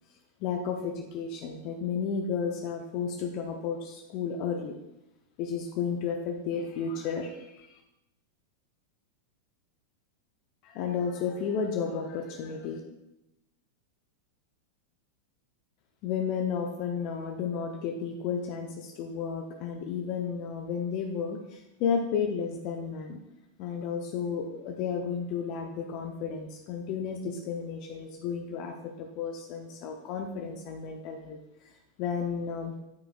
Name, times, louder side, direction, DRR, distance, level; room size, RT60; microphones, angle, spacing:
voice 1, 0.4-4.7 5.4-7.8 10.6-12.8 16.0-23.2 23.6-31.7 32.0-32.7, left 6 dB, 40° left, 3 dB, 0.8 m, -32 dB
12.5 x 4.9 x 2.5 m, 0.89 s
figure-of-eight pair, 90°, 0 cm